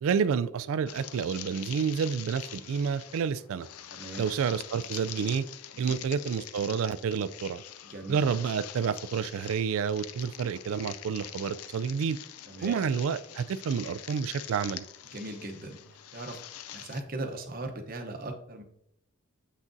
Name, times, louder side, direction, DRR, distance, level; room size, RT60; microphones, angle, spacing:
voice 1, 0.0-3.7 4.2-5.5 5.8-7.6 8.1-12.2 12.6-14.9, right 6 dB, 70° right, 16 dB, 0.3 m, -29 dB
sound 1, 0.9-17.0, left 11 dB, 90° left, 0.4 m, -44 dB
voice 2, 3.9-4.2 5.7-6.0 7.9-8.2 12.5-12.8 15.1-15.8 16.1-16.4 16.7-18.6, right 2 dB, 40° right, 4 dB, 0.8 m, -38 dB
7.3 x 6.0 x 2.6 m, 0.75 s
head